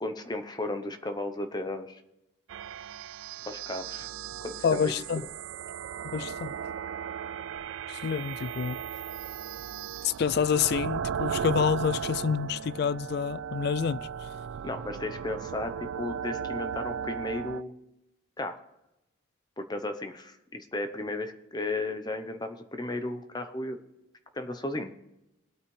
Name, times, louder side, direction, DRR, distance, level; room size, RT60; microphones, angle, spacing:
voice 1, 0.0-2.0 3.5-4.1 4.4-4.9 14.6-17.7 18.4-18.7 19.6-23.8 24.3-25.0, left 2 dB, 20° left, 0.8 m, -34 dB
sound 1, 2.5-17.6, right 7 dB, 70° right, 0.3 m, -36 dB
voice 2, 4.6-5.2 6.1-6.5 7.9-8.8 10.0-14.1, left 6 dB, 50° left, 0.3 m, -28 dB
22.0 x 8.8 x 3.3 m
head